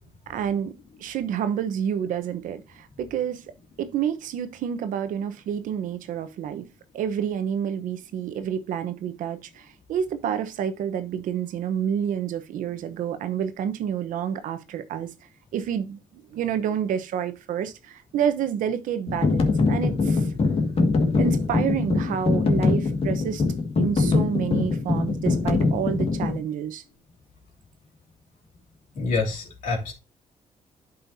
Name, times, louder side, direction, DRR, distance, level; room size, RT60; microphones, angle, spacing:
voice 1, 0.3-0.7 1.0-3.4 3.8-6.7 6.9-15.1 15.5-20.3 21.2-23.4 23.8-26.8, right 8 dB, 85° right, 1.0 m, -29 dB
sound 1, 19.1-26.4, left 3 dB, 45° left, 1.9 m, -23 dB
voice 2, 28.9-29.9, left 4 dB, 80° left, 3.0 m, -27 dB
10.5 x 5.5 x 2.8 m
cardioid pair, 95°, 13 cm